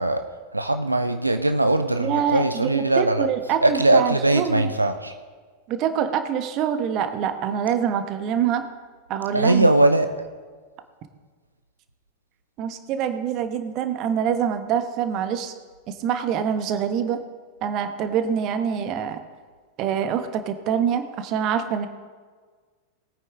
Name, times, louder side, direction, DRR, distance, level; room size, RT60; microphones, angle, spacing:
voice 1, 0.0-3.3 3.6-5.1 9.3-10.1, right 2 dB, 85° right, 8 dB, 0.6 m, -20 dB
voice 2, 2.0-4.7 5.7-8.7 9.1-9.7 12.6-15.5 15.9-17.2 17.6-19.2 19.8-21.9, right 8 dB, 40° right, 8 dB, 1.2 m, -25 dB
20.0 x 9.1 x 3.7 m, 1.5 s
figure-of-eight pair, 90°, 0 cm